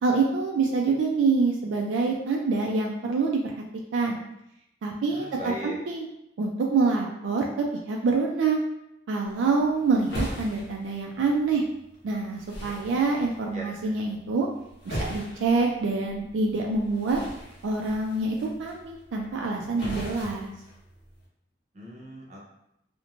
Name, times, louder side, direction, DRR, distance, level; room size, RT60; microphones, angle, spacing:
voice 1, 0.0-3.4 3.9-4.2 4.8-6.1 6.4-8.6 9.1-11.6 12.0-14.5 14.9-17.2 17.6-20.5, right 4 dB, 80° right, 0 dB, 0.3 m, -26 dB
voice 2, 5.1-5.8 13.5-13.9 21.7-22.4, equal, 40° right, -3 dB, 0.6 m, -38 dB
sound 1, 9.2-21.3, equal, 70° left, 0.9 m, -40 dB
2.9 x 2.1 x 2.4 m, 0.81 s
head